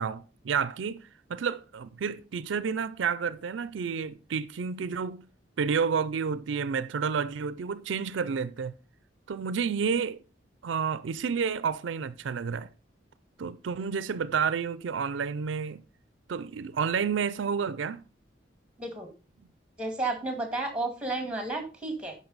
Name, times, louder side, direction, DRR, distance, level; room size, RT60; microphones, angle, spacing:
voice 1, 0.0-5.2 5.6-8.7 9.3-10.2 10.6-12.7 13.4-15.8 16.3-18.0, right 6 dB, 75° right, 0.4 m, -30 dB
voice 2, 19.8-22.2, right 2 dB, 5° right, 1.9 m, -32 dB
10.5 x 5.7 x 4.0 m
head